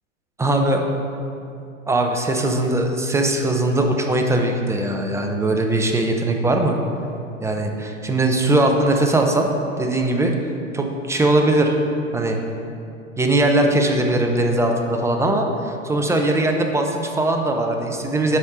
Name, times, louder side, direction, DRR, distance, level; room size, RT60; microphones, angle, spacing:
voice 1, 0.4-0.9 1.9-6.8 7.4-9.5 9.8-10.3 10.7-11.7 12.1-12.4 13.2-18.4, right 2 dB, 5° right, 3 dB, 0.7 m, -20 dB
8.5 x 5.3 x 4.9 m, 2.5 s
hypercardioid pair, 100°, 39 cm